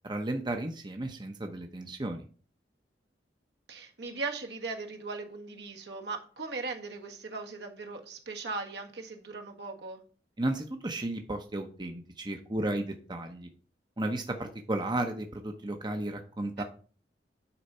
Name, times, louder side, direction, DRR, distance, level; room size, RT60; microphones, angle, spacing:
voice 1, 0.0-2.2 10.4-13.5 14.0-16.6, right 1 dB, 25° right, 0.8 m, -34 dB
voice 2, 3.7-10.0 16.6-16.7, right 3 dB, 70° right, 1.5 m, -38 dB
9.8 x 4.1 x 5.5 m
head